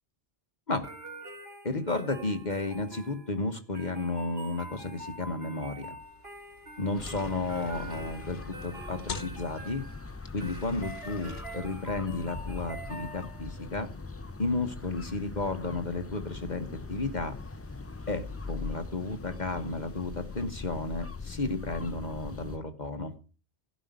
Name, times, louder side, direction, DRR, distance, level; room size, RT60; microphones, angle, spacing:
sound 1, 0.8-13.6, right 2 dB, 60° right, 3.1 m, -45 dB
voice 1, 1.6-6.0 6.8-9.9 10.3-13.9 14.4-17.3 18.1-23.1, left 3 dB, 40° left, 7 dB, 1.3 m, -33 dB
sound 2, 6.0-21.0, left 4 dB, 60° left, 1.5 m, -50 dB
sound 3, 6.9-22.6, left 4 dB, 25° left, 0.3 m, -41 dB
16.0 x 5.3 x 9.4 m, 0.38 s
omnidirectional pair, 1.2 m